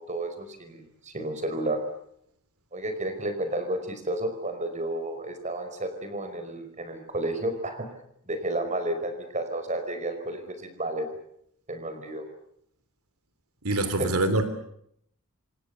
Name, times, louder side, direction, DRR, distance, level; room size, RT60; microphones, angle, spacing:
voice 1, 0.0-1.8 2.7-7.9 8.3-11.1 11.7-12.2 14.0-14.1, right 1 dB, 35° right, 8 dB, 5.1 m, -31 dB
voice 2, 13.6-14.4, right 2 dB, 80° right, 10 dB, 3.1 m, -24 dB
27.5 x 26.5 x 6.9 m, 0.72 s
head